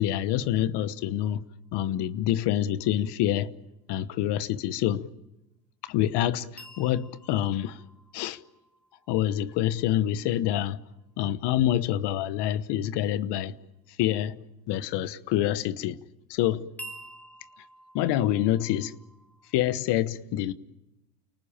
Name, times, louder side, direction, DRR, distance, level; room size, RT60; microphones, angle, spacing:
voice 1, 0.0-1.4 1.7-3.5 3.9-5.1 5.8-7.8 8.1-8.4 9.1-10.8 11.2-13.5 14.0-14.4 14.7-16.0 16.3-16.7 17.9-18.9 19.5-20.5, left 12 dB, 55° left, 1.2 m, -26 dB
sound 1, 6.6-10.5 16.8-19.5, right 1 dB, 5° left, 2.8 m, -49 dB
29.5 x 19.5 x 8.9 m
supercardioid pair, 105°, 48 cm